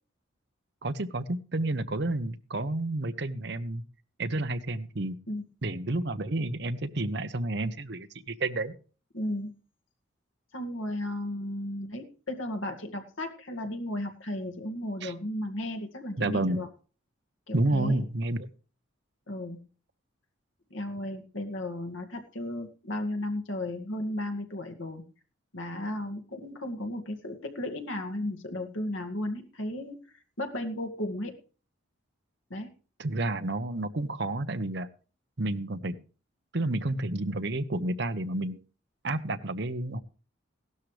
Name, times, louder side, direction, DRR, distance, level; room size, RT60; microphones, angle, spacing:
voice 1, 0.8-3.8 4.2-5.2 5.6-8.7 15.0-15.1 16.2-16.6 17.5-18.5 33.0-34.9 35.4-36.0 36.5-38.6 39.0-40.0, right 2 dB, 55° right, 11 dB, 0.9 m, -30 dB
voice 2, 9.1-9.5 10.5-16.7 17.5-18.0 19.3-19.6 20.7-25.0 25.5-30.0 30.4-31.3 32.5-32.7, left 1 dB, 80° left, 6 dB, 2.1 m, -34 dB
17.0 x 12.0 x 3.4 m, 0.38 s
head